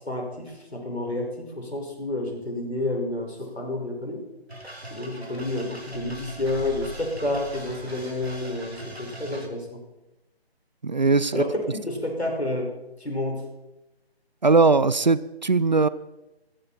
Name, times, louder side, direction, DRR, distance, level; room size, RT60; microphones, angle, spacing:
voice 1, 0.0-4.2 4.9-9.8 11.3-12.7 13.0-13.5, left 1 dB, 80° left, 1 dB, 5.3 m, -30 dB
sound 1, 4.5-9.5, right 1 dB, 75° right, 2.9 m, -41 dB
sound 2, 5.9-8.6, left 2 dB, 30° left, 3.0 m, -42 dB
voice 2, 10.8-11.5 14.4-15.9, right 3 dB, 45° right, 18 dB, 0.5 m, -20 dB
15.5 x 15.0 x 4.3 m, 0.97 s
figure-of-eight pair, 150°, 32 cm